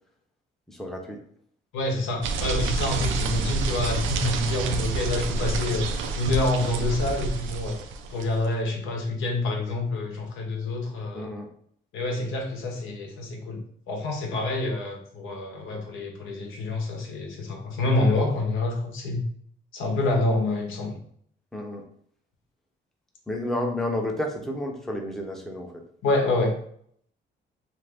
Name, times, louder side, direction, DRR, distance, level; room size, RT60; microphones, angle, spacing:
voice 1, 0.7-1.2 11.1-11.5 21.5-21.8 23.3-25.7, left 1 dB, ahead, 1 dB, 0.6 m, -31 dB
voice 2, 1.7-5.9 6.1-7.8 8.1-11.3 11.9-19.2 19.7-20.9 26.0-26.5, left 2 dB, 85° left, 1 dB, 0.8 m, -27 dB
sound 1, 2.2-8.5, right 4 dB, 80° right, 0.4 m, -28 dB
2.5 x 2.5 x 3.4 m, 0.63 s
cardioid pair, 90°, 20 cm